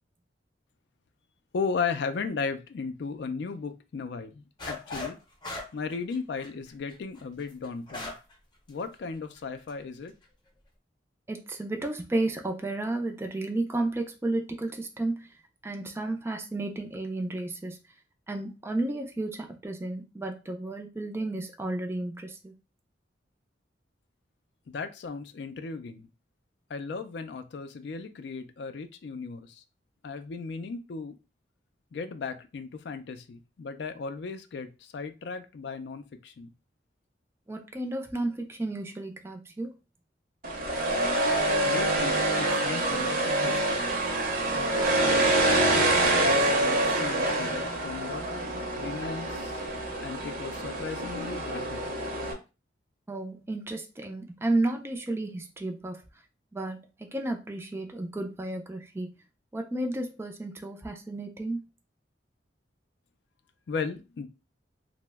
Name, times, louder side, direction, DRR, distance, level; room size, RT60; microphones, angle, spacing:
voice 1, 1.5-5.2 5.7-8.1 8.7-10.1 24.7-26.1 26.7-29.6 30.0-31.2 31.9-36.5 41.6-43.9 44.5-48.3 48.8-49.6 50.0-51.9 63.7-64.3, left 4 dB, 65° left, 9 dB, 0.4 m, -36 dB
sound 1, 4.6-5.2 5.4-8.3 8.7-8.8 9.4-9.7, left 2 dB, 25° left, 0.7 m, -38 dB
voice 2, 11.3-15.1 15.6-17.8 18.3-22.5 37.5-39.7 53.1-56.0 56.5-56.8 57.1-59.1 59.5-61.6, right 2 dB, 15° right, 4 dB, 0.4 m, -32 dB
sound 2, 40.4-52.3, right 1 dB, 50° right, 0.7 m, -26 dB
2.9 x 2.1 x 3.3 m, 0.29 s
head